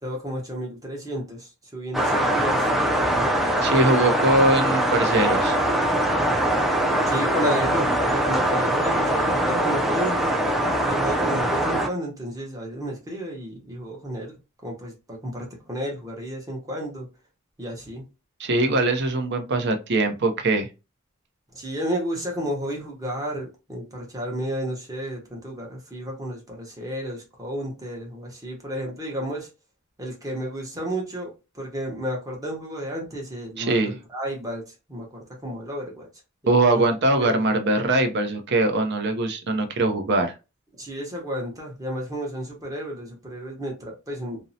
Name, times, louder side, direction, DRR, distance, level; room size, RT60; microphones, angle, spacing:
voice 1, 0.0-2.7 7.1-10.4 10.9-17.1 17.6-18.0 18.7-18.8 21.5-29.5 30.0-36.1 36.4-36.8 37.2-37.5 40.8-44.4, equal, 15° right, 0.8 m, -32 dB
sound 1, 1.9-11.9, right 1 dB, ahead, 0.3 m, -22 dB
voice 2, 3.6-5.6 18.4-20.7 33.6-33.9 36.5-40.3, right 2 dB, 55° right, 0.5 m, -22 dB
2.6 x 2.0 x 2.6 m
head